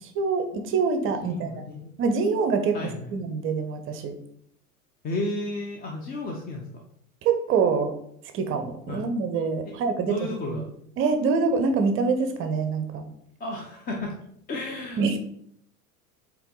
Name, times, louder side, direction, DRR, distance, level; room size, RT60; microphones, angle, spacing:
voice 1, 0.0-1.5 2.0-2.8 3.1-4.1 7.2-7.9 8.3-10.2 10.5-10.6 11.0-13.1 15.0-15.2, right 5 dB, 25° right, 7 dB, 0.7 m, -25 dB
voice 2, 1.2-1.9 2.7-3.1 5.0-6.8 8.9-9.1 10.0-10.7 13.4-14.2 14.5-15.2, left 2 dB, 20° left, 1 dB, 0.7 m, -33 dB
8.1 x 3.1 x 3.9 m, 0.70 s
figure-of-eight pair, 80°, 46 cm